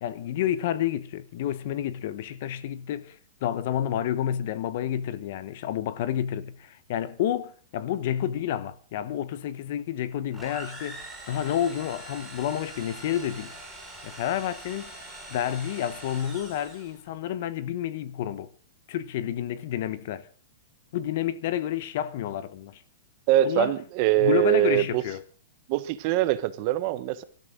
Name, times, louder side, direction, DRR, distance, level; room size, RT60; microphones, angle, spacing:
voice 1, 0.0-13.5 14.0-14.9 15.3-18.5 18.9-20.3 20.9-22.8 23.4-23.7 24.2-25.2, left 11 dB, 50° left, 1.1 m, -30 dB
sound 1, 10.3-17.0, right 2 dB, 5° right, 7.3 m, -43 dB
voice 2, 23.3-25.0 25.7-27.2, right 14 dB, 35° right, 1.1 m, -23 dB
24.0 x 13.0 x 3.9 m
supercardioid pair, 165°, 0 cm